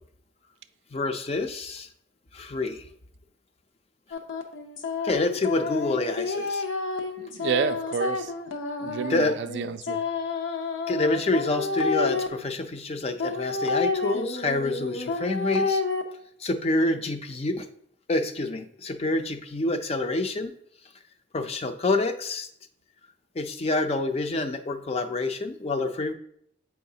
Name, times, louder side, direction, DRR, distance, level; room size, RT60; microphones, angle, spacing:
voice 1, 0.9-1.9 2.3-2.9 5.0-6.6 9.1-9.3 10.9-15.8 16.4-17.7 18.1-20.5 21.3-22.5 23.4-26.1, left 2 dB, 30° left, 0.4 m, -27 dB
sound 1, 4.1-12.3 13.2-16.0, left 4 dB, 80° left, 0.7 m, -29 dB
voice 2, 7.2-8.3 8.8-10.0, right 7 dB, 60° right, 0.3 m, -29 dB
7.8 x 4.7 x 2.7 m
head